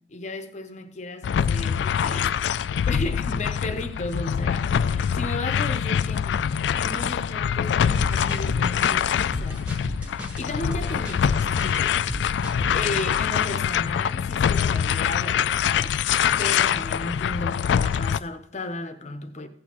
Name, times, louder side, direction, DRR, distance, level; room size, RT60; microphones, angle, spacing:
voice 1, 0.1-2.3 2.8-12.0 12.7-16.0 16.4-19.5, left 2 dB, 40° left, 0.7 m, -35 dB
sound 1, 1.2-18.2, left 8 dB, 80° left, 0.3 m, -24 dB
sound 2, 7.9-13.2, equal, 10° right, 1.3 m, -35 dB
15.0 x 8.3 x 3.0 m
head